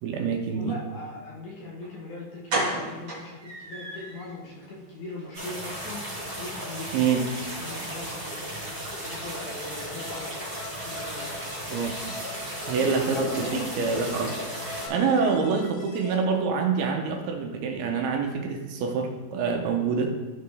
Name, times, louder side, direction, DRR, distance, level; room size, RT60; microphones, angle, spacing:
voice 1, 0.0-0.8 6.9-7.2 11.7-12.0 12.7-20.2, right 5 dB, 75° right, 3 dB, 2.5 m, -26 dB
voice 2, 0.5-6.0 6.4-6.9 7.5-10.4 10.8-11.3 12.8-13.7, left 2 dB, 65° left, -5 dB, 2.2 m, -39 dB
sound 1, 1.8-1.9 2.5-4.3 4.6-4.7 5.1-5.2 5.5-5.6, right 2 dB, 45° right, 1.7 m, -31 dB
sound 2, 5.3-14.9, equal, 20° right, 1.8 m, -35 dB
sound 3, 9.6-16.2, left 2 dB, 85° left, 3.2 m, -44 dB
13.0 x 4.8 x 3.4 m, 1.2 s
omnidirectional pair, 4.7 m